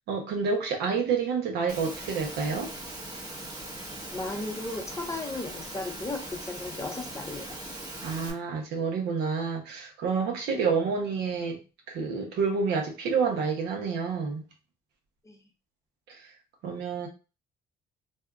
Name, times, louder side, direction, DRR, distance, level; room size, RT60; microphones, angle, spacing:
voice 1, 0.1-2.7 8.0-11.6 11.9-14.4 16.1-16.3 16.6-17.1, right 5 dB, 80° right, 1.0 m, -29 dB
Engine / Mechanisms, 1.7-8.3, right 1 dB, 20° right, 0.9 m, -40 dB
voice 2, 4.1-7.6 10.5-10.6 15.2-15.4, left 2 dB, 15° left, 0.6 m, -35 dB
2.7 x 2.3 x 3.5 m
cardioid pair, 110°, 17 cm